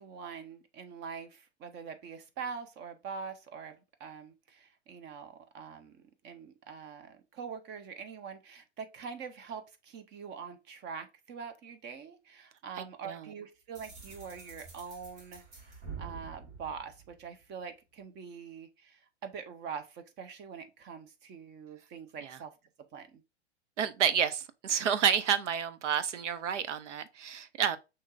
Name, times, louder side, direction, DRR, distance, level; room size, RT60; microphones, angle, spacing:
voice 1, 0.0-22.5 22.9-23.2, right 6 dB, 30° right, 0.8 m, -44 dB
voice 2, 12.8-13.3 22.2-22.4 23.8-27.8, right 8 dB, 85° right, 0.7 m, -30 dB
sound 1, 13.7-17.6, right 5 dB, 60° right, 1.9 m, -47 dB
6.1 x 2.9 x 2.4 m
hypercardioid pair, 115°, 35 cm